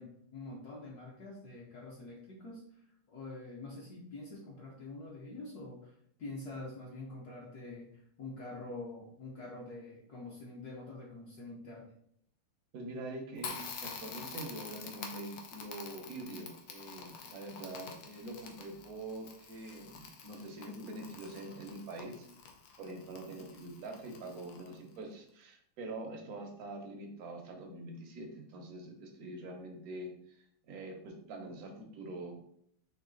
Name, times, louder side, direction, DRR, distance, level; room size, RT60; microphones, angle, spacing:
voice 1, 0.0-11.9, left 2 dB, 65° left, -3 dB, 1.0 m, -46 dB
voice 2, 12.7-22.3 22.8-32.4, right 2 dB, 75° right, 3 dB, 0.8 m, -45 dB
Crackle, 13.4-25.0, left 6 dB, 90° left, 1.6 m, -48 dB
4.1 x 3.1 x 3.7 m, 0.68 s
omnidirectional pair, 2.4 m